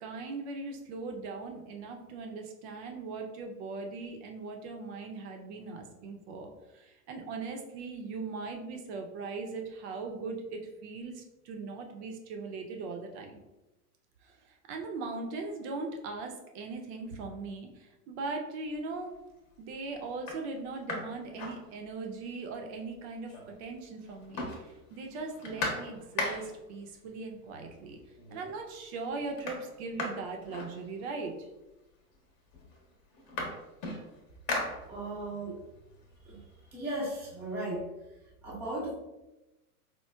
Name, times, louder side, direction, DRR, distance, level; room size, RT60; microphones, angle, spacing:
voice 1, 0.0-13.4 14.2-19.1 19.6-28.0 28.3-31.5, right 3 dB, 45° right, 3 dB, 0.6 m, -39 dB
sound 1, 18.7-19.2 19.7-19.8 20.1-22.2 22.6-22.7 22.9-23.7 24.0-26.7 27.7-27.8 28.2-28.7 28.9-31.3 32.1-32.2 32.5-35.4 35.8-37.5, left 2 dB, 40° left, 0.9 m, -39 dB
voice 2, 34.9-35.6 36.3-36.4 36.7-37.8 38.4-38.9, right 1 dB, 5° right, -7 dB, 0.5 m, -36 dB
4.4 x 2.0 x 2.2 m, 1.0 s
hypercardioid pair, 120°, 46 cm